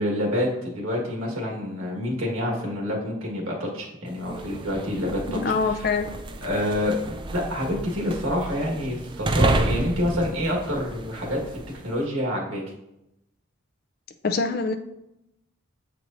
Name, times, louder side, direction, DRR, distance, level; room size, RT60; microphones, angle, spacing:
voice 1, 0.0-5.4 6.4-7.0 7.3-11.6 11.8-12.6, left 1 dB, 85° right, -2 dB, 1.6 m, -27 dB
sound 1, 4.1-11.9, right 2 dB, 25° right, 0.4 m, -30 dB
voice 2, 5.3-6.1 14.2-14.8, left 4 dB, 45° left, 8 dB, 0.4 m, -24 dB
8.0 x 4.5 x 2.6 m, 0.87 s
head